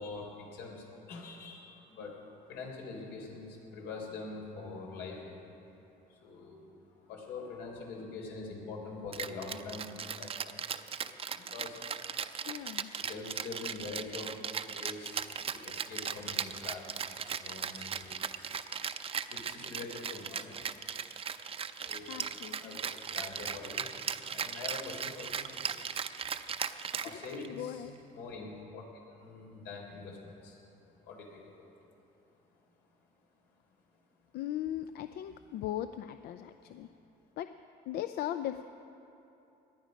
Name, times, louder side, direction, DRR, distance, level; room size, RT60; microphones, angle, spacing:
voice 1, 0.0-5.5 6.0-6.7 7.0-12.1 12.9-14.4 14.7-15.3 15.5-18.5 19.3-20.6 21.7-22.3 22.6-23.8 24.3-26.2 27.0-27.8 28.1-30.6 31.0-31.7 36.6-36.8, left 3 dB, 90° left, -1 dB, 3.8 m, -45 dB
Rattle (instrument), 9.1-27.6, right 7 dB, 35° right, 0.6 m, -38 dB
voice 2, 12.4-12.9 22.1-22.8 27.3-27.9 34.3-36.9 37.4-37.5 37.9-38.6, left 12 dB, 70° left, 10 dB, 0.5 m, -38 dB
19.0 x 11.5 x 5.3 m, 2.8 s
cardioid pair, 110°, 17 cm